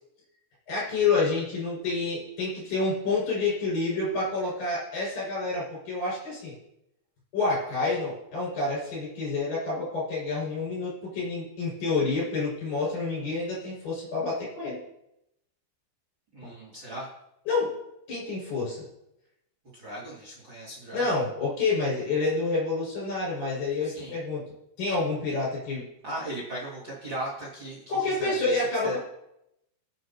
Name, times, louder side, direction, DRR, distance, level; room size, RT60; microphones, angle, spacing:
voice 1, 0.7-6.5 7.3-14.8 16.4-16.5 17.5-17.8 18.1-18.8 20.9-24.4 24.8-25.8 27.9-29.0, left 3 dB, 50° left, -7 dB, 8.2 m, -28 dB
voice 2, 16.3-17.1 19.7-21.1 23.8-24.1 26.0-27.8 28.0-29.0, right 1 dB, 30° right, -6 dB, 3.2 m, -37 dB
25.0 x 8.8 x 3.0 m, 0.83 s
omnidirectional pair, 5.2 m